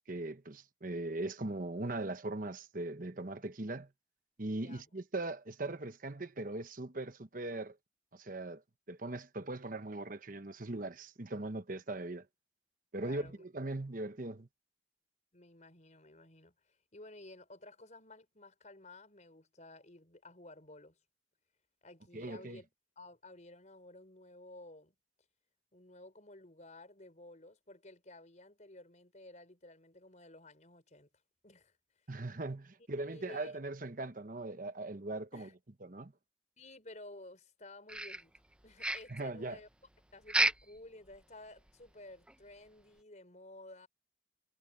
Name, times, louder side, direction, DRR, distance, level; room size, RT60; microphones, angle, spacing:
voice 1, 0.1-3.9 4.4-7.8 8.1-8.6 8.9-12.2 12.9-14.5 22.1-22.6 32.1-35.5 35.8-36.1 39.1-39.6, right 2 dB, 50° right, 1.1 m, -40 dB
voice 2, 4.5-4.9 13.0-13.4 15.3-21.0 21.8-22.7 22.9-24.9 25.7-31.1 31.4-31.7 33.0-33.5 35.3-35.5 36.6-38.3 38.6-39.7 40.1-43.9, left 2 dB, 40° left, 5.0 m, -54 dB
sound 1, 37.9-38.5 38.8-39.2 40.3-40.8 41.1-41.2 41.7-41.8 42.3-42.4, right 1 dB, 5° right, 0.7 m, -32 dB
head